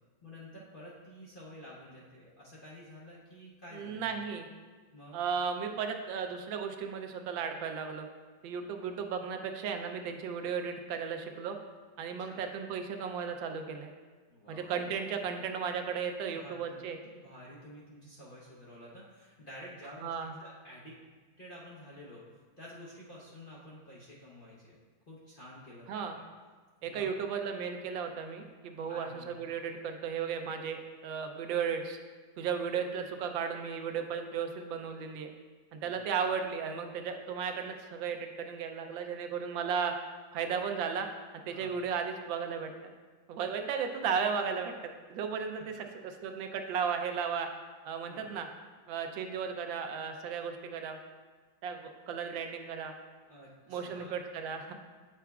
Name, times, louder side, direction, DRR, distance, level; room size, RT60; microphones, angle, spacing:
voice 1, 0.2-4.1 4.9-5.2 8.7-8.9 12.3-12.4 14.3-14.9 16.2-16.7 17.2-20.1 20.4-21.0 21.4-22.2 22.6-24.8 25.1-26.1 26.8-27.1 28.9-29.4 35.7-35.9 41.5-41.7 45.3-45.6 48.1-48.3 53.3-54.1, equal, 45° left, -7 dB, 0.7 m, -50 dB
voice 2, 3.7-4.5 5.1-8.1 8.4-11.6 12.0-13.9 14.5-17.0 20.0-20.3 25.9-26.2 26.8-32.0 32.4-35.3 35.7-39.9 40.3-41.1 41.3-42.7 43.3-44.7 45.1-47.5 47.8-48.5 48.9-51.0 51.6-52.9 53.7-54.7, right 6 dB, 85° right, 5 dB, 1.3 m, -35 dB
8.4 x 5.9 x 2.3 m, 1.4 s
omnidirectional pair, 2.0 m